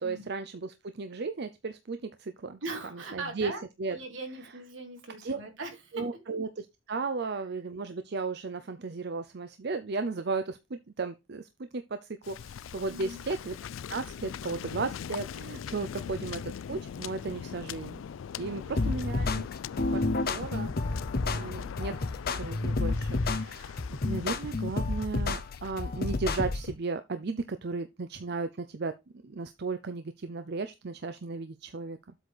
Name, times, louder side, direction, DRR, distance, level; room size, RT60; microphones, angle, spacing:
voice 1, 0.0-2.6 2.9-3.5 3.8-4.0 4.4-4.5 5.2-5.4 5.9-13.6 13.9-18.0 18.4-19.5 19.9-20.7 21.3-21.9 22.3-28.9 29.2-32.1, right 4 dB, 60° right, 0.6 m, -35 dB
voice 2, 2.6-3.6 3.9-6.0 12.8-13.2 16.0-16.1 18.4-18.9 21.1-21.6, right 2 dB, 80° right, 3.0 m, -41 dB
Waves surf, 12.2-26.2, left 7 dB, 90° left, 0.4 m, -41 dB
sound 1, 18.8-26.7, left 3 dB, 50° left, 0.8 m, -30 dB
8.0 x 4.2 x 4.8 m
head